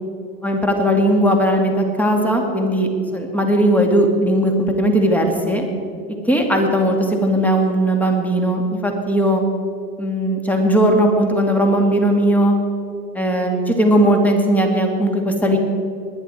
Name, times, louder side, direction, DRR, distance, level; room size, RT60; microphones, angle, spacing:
voice 1, 0.4-5.6 6.2-9.4 10.0-12.5 13.1-15.6, right 1 dB, 5° left, 2 dB, 2.3 m, -18 dB
20.5 x 10.5 x 4.5 m, 2.6 s
hypercardioid pair, 95°, 45 cm